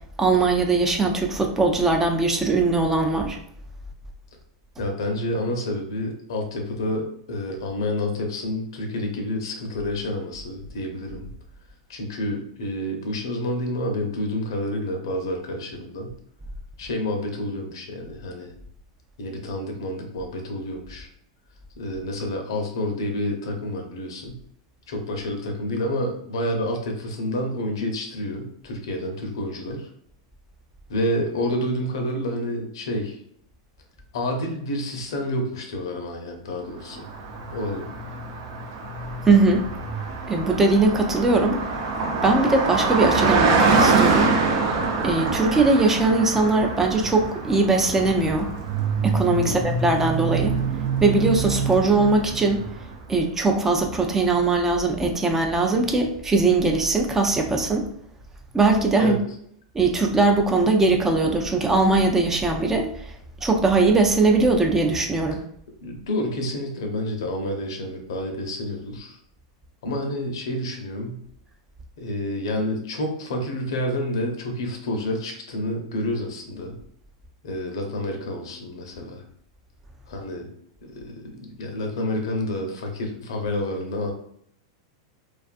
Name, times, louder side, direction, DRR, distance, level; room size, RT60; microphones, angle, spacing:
voice 1, 0.2-3.4 39.3-39.7 40.3-41.6 42.2-44.3 45.0-48.5 49.0-50.6 51.0-52.6 53.1-57.9 58.5-59.2 59.7-63.1 63.4-65.4, right 3 dB, 15° right, 3 dB, 0.4 m, -20 dB
voice 2, 4.8-11.3 11.9-16.1 16.8-18.5 19.2-21.1 21.8-24.4 24.9-29.9 30.9-33.2 34.1-37.0 37.5-37.9 49.4-49.7 59.0-59.2 65.8-69.2 69.8-71.2 72.0-76.7 77.4-79.2 80.1-80.5 80.8-84.1, left 1 dB, 75° left, 3 dB, 0.7 m, -29 dB
Car passing by, 36.9-53.0, right 4 dB, 60° right, 0.6 m, -25 dB
2.4 x 2.4 x 2.4 m, 0.68 s
hypercardioid pair, 115°, 2 cm